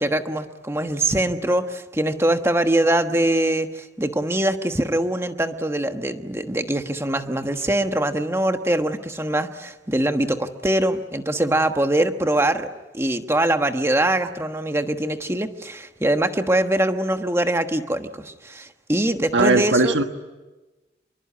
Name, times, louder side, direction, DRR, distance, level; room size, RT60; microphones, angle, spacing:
voice 1, 0.0-12.7 12.9-20.0, right 1 dB, 15° right, 7 dB, 1.2 m, -23 dB
voice 2, 19.3-20.0, right 2 dB, 75° right, 7 dB, 1.5 m, -18 dB
26.5 x 23.0 x 9.6 m, 1.1 s
head